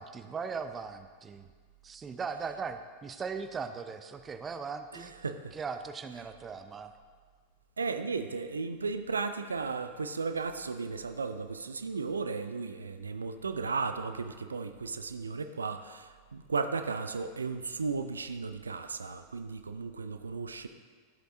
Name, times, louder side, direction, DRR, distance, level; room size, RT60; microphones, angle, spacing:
voice 1, 0.0-1.5 1.8-5.1 5.5-6.9, right 5 dB, 20° right, 9 dB, 0.5 m, -39 dB
voice 2, 4.9-5.5 7.8-20.7, right 4 dB, 75° right, 9 dB, 0.4 m, -35 dB
12.5 x 7.9 x 2.7 m, 1.6 s
figure-of-eight pair, 90°, 0 cm